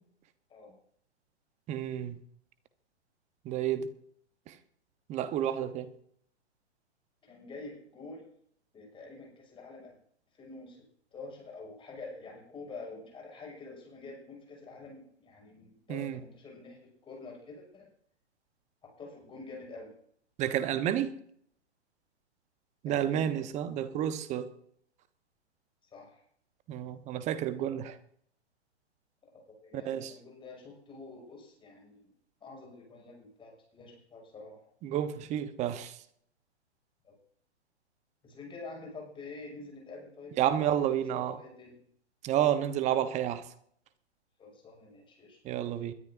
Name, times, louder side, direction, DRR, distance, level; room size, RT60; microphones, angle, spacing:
voice 1, 1.7-2.2 3.4-3.9 4.5-4.6 5.1-5.9 15.9-16.2 20.4-21.1 22.8-24.5 26.7-28.0 29.8-30.1 34.8-36.0 40.4-41.4 42.2-43.4 45.4-45.9, right 10 dB, 20° right, 12 dB, 1.0 m, -30 dB
voice 2, 7.2-8.3 8.7-10.0 10.3-10.8 11.1-17.9 18.8-19.9 22.8-23.5 25.8-26.2 29.3-32.1 32.4-34.7 37.0-37.2 38.2-41.8 44.4-45.4, left 3 dB, 15° left, 0 dB, 6.7 m, -47 dB
21.5 x 13.0 x 2.7 m, 0.63 s
figure-of-eight pair, 120°, 34 cm